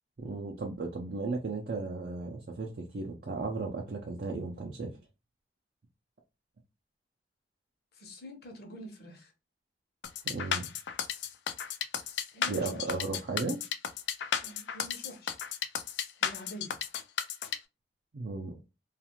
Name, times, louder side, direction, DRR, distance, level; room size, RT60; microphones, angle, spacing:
voice 1, 0.2-4.9 10.2-10.7 12.5-13.6 18.1-18.5, right 3 dB, 55° right, 0.4 m, -35 dB
voice 2, 7.9-9.3 12.3-13.0 14.4-15.3 16.2-16.7, equal, 60° left, 0.8 m, -46 dB
sound 1, 10.0-17.6, left 8 dB, 80° left, 0.3 m, -33 dB
2.4 x 2.4 x 2.9 m
head